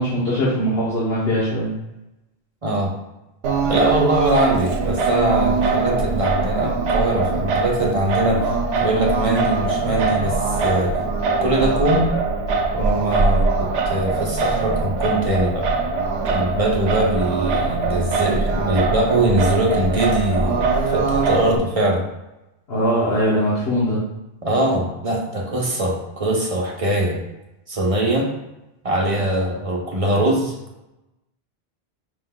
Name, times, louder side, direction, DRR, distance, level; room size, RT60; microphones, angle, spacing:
voice 1, 0.0-1.7 22.7-24.0, equal, 80° left, -8 dB, 1.3 m, -21 dB
Singing, 3.4-21.6, right 4 dB, 75° right, 0.8 m, -22 dB
voice 2, 3.6-8.5 8.8-10.9 11.4-12.1 12.7-15.7 16.3-22.0 24.4-27.2 27.7-28.3 28.8-30.5, right 1 dB, 40° right, -1 dB, 0.7 m, -22 dB
5.1 x 3.7 x 2.3 m, 0.95 s
omnidirectional pair, 1.0 m